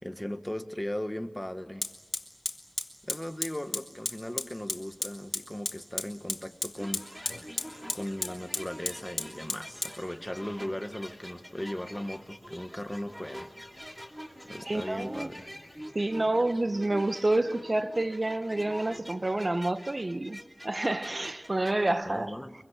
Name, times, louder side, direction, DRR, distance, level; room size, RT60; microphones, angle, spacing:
voice 1, 0.0-1.9 3.0-7.1 7.9-13.5 14.4-15.5 22.1-22.5, left 1 dB, 15° left, 1.6 m, -37 dB
Fire, 1.8-15.8, left 2 dB, 70° left, 2.1 m, -39 dB
sound 1, 6.8-21.9, equal, 5° right, 2.5 m, -46 dB
voice 2, 14.7-15.3 15.9-22.4, right 2 dB, 45° right, 1.0 m, -29 dB
23.5 x 23.5 x 8.2 m
wide cardioid pair, 55°, 0 cm